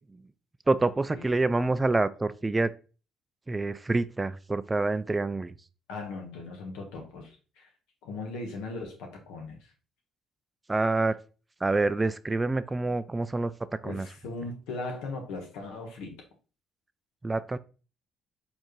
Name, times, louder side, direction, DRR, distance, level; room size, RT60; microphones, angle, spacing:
voice 1, 0.7-2.7 3.5-5.5 10.7-11.2 11.6-13.5 13.8-14.1 17.2-17.6, right 3 dB, 20° right, 0.3 m, -27 dB
voice 2, 5.9-7.7 8.0-9.7 13.8-16.2, left 3 dB, 80° left, 1.2 m, -38 dB
4.5 x 3.4 x 3.0 m
hypercardioid pair, 60°, 0 cm